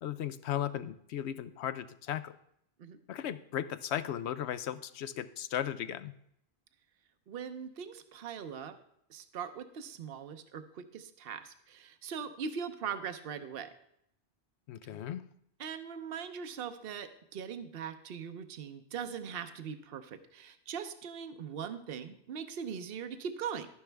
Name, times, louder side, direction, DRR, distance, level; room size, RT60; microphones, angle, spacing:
voice 1, 0.0-2.3 3.1-6.1 14.7-15.2, left 10 dB, 90° left, 13 dB, 0.9 m, -36 dB
voice 2, 7.3-8.7 9.1-13.7 15.6-23.7, right 7 dB, 65° right, 10 dB, 0.9 m, -41 dB
11.5 x 10.0 x 3.4 m, 0.73 s
omnidirectional pair, 1.1 m